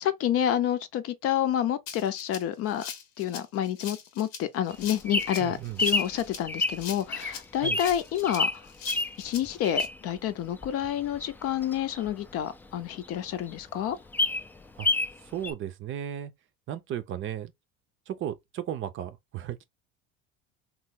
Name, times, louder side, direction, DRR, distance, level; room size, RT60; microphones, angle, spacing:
voice 1, 0.0-2.9 3.2-8.6 9.2-14.0, left 10 dB, 50° left, 0.6 m, -29 dB
Rattle (instrument), 1.9-9.9, left 7 dB, 75° left, 0.8 m, -42 dB
Bird vocalization bird call bird song, 4.7-10.2 10.6-12.8 13.2-13.3 13.5-13.6 13.9-15.2 15.4-15.5, left 2 dB, 5° left, 0.3 m, -29 dB
voice 2, 5.4-5.8 7.6-7.8 14.8-14.9 15.2-16.3 16.7-17.5 18.1-19.6, right 10 dB, 45° right, 0.6 m, -35 dB
3.0 x 2.0 x 3.4 m
hypercardioid pair, 85°, 30 cm